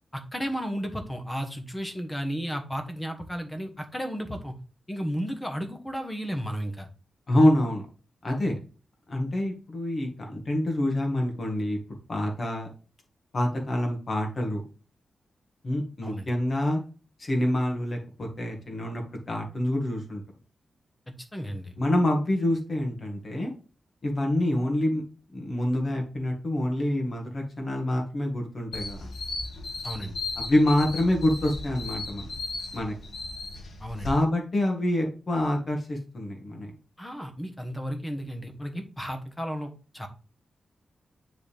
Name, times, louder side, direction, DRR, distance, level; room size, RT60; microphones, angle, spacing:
voice 1, 0.1-4.5 4.9-6.9 16.0-16.3 21.3-21.7 29.8-30.2 33.8-34.1 37.0-40.1, equal, 10° left, 5 dB, 1.2 m, -33 dB
voice 2, 7.3-7.8 8.2-8.6 9.1-11.8 12.1-12.7 13.3-14.6 15.6-16.8 17.2-20.2 21.8-23.5 24.0-25.0 25.3-29.1 30.4-32.3 32.7-32.9 34.0-36.7, left 1 dB, 35° left, 1 dB, 1.8 m, -26 dB
sound 1, 28.7-34.1, left 3 dB, 90° left, 2.4 m, -36 dB
9.8 x 4.0 x 3.4 m, 0.36 s
wide cardioid pair, 150°, 0 cm